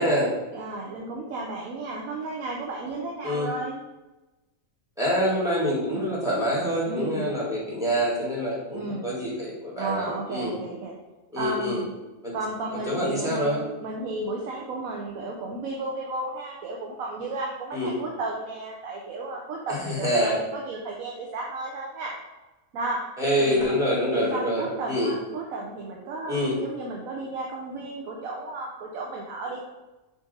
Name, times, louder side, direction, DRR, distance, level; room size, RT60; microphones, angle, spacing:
voice 1, 0.0-0.3 3.2-3.5 5.0-10.5 11.3-11.8 12.2-12.3 12.9-13.6 17.7-17.9 19.9-20.4 23.2-25.1 26.3-26.5, equal, 5° right, -7 dB, 1.3 m, -26 dB
voice 2, 0.5-3.7 5.9-6.2 6.8-7.3 8.7-9.2 9.7-10.9 11.4-11.9 12.3-22.1 22.7-23.0 23.4-23.8 24.1-29.7, right 2 dB, 80° right, -1 dB, 1.1 m, -33 dB
5.1 x 2.7 x 3.9 m, 1.1 s
omnidirectional pair, 1.4 m